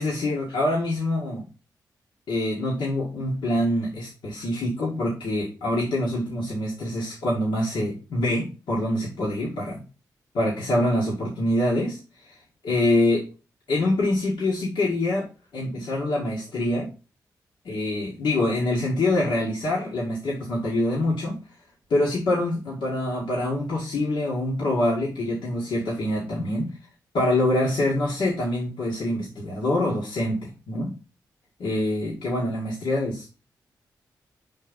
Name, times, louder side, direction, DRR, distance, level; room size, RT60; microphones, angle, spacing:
voice 1, 0.0-1.4 2.3-9.8 10.3-12.0 12.3-12.4 12.6-13.2 13.7-15.3 15.5-16.9 17.7-21.4 21.9-26.7 27.1-30.9 31.6-33.4, left 1 dB, 80° left, -5 dB, 1.8 m, -25 dB
5.1 x 4.5 x 5.2 m, 0.31 s
supercardioid pair, 45°, 8 cm